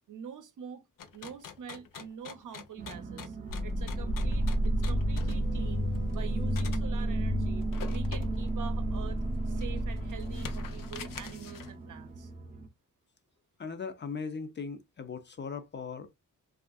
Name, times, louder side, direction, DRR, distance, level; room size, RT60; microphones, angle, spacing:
voice 1, 0.1-0.8 1.1-3.4 3.6-9.2 9.5-12.3, right 7 dB, 70° right, 0.6 m, -45 dB
sound 1, 1.0-6.9 7.6-8.5 9.0-9.1 9.6-11.8, left 8 dB, 90° left, 0.5 m, -46 dB
sound 2, 2.8-12.7, right 4 dB, 25° right, 0.5 m, -40 dB
sound 3, 3.5-11.3, equal, 60° left, 1.0 m, -31 dB
voice 2, 13.6-16.1, left 5 dB, 35° left, 0.4 m, -39 dB
3.4 x 2.4 x 2.3 m
wide cardioid pair, 165°, 32 cm